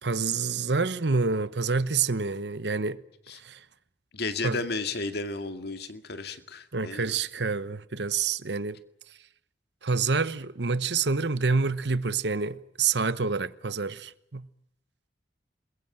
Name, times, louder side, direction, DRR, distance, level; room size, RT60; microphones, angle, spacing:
voice 1, 0.0-3.0 3.3-3.6 4.4-4.6 6.7-8.8 9.8-14.5, right 4 dB, 70° right, 1.1 m, -27 dB
voice 2, 4.1-7.2, left 3 dB, 65° left, 2.1 m, -33 dB
28.0 x 22.0 x 7.5 m
head